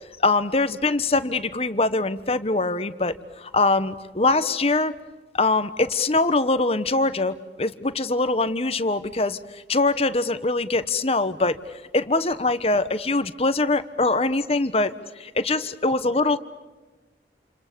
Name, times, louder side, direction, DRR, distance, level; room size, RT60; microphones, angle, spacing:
voice 1, 0.2-4.9 5.3-11.6 11.9-16.4, left 3 dB, 35° left, 12 dB, 1.2 m, -23 dB
29.0 x 28.5 x 6.9 m, 1.2 s
head